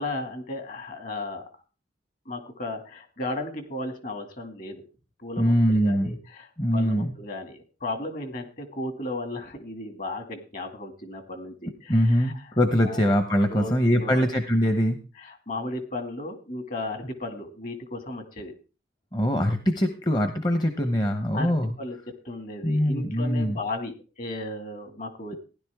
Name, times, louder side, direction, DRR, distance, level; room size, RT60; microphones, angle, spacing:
voice 1, 0.0-1.4 2.3-4.8 5.2-12.3 12.8-13.1 13.5-14.3 15.2-18.5 21.3-22.0 22.2-25.4, left 2 dB, 50° left, 6 dB, 2.3 m, -35 dB
voice 2, 5.4-6.2 6.6-7.1 11.9-15.0 19.1-21.7 22.6-23.6, equal, 25° left, 7 dB, 0.9 m, -23 dB
15.5 x 11.0 x 3.6 m, 0.33 s
head